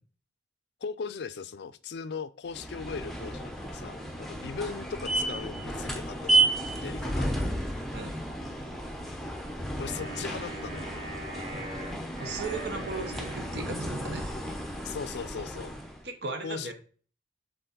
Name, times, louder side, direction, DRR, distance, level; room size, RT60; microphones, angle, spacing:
voice 1, 0.8-6.5 6.8-7.3 9.8-10.8 14.8-15.7 16.4-16.7, left 5 dB, 65° left, 0.4 m, -38 dB
sound 1, 2.5-16.0, right 2 dB, ahead, 0.7 m, -32 dB
voice 2, 7.9-8.2 11.5-11.6 12.2-14.3 16.0-16.7, right 3 dB, 60° right, 0.9 m, -36 dB
Wind instrument woodwind instrument, 9.8-14.3, right 2 dB, 40° right, 2.2 m, -42 dB
6.8 x 4.0 x 3.9 m
head